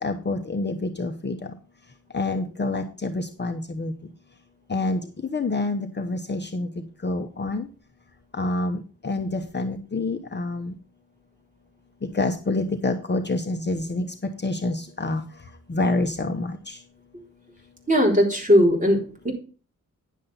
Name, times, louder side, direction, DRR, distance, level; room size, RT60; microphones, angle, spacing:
voice 1, 0.0-1.5 2.1-3.9 4.7-5.0 5.3-6.7 7.0-7.7 8.3-10.7 12.1-14.1 14.4-15.2 15.7-16.8, left 2 dB, 35° left, 4 dB, 0.9 m, -27 dB
voice 2, 17.9-19.3, equal, 25° right, 0 dB, 3.7 m, -19 dB
10.0 x 7.4 x 4.0 m, 0.36 s
wide cardioid pair, 105°, 33 cm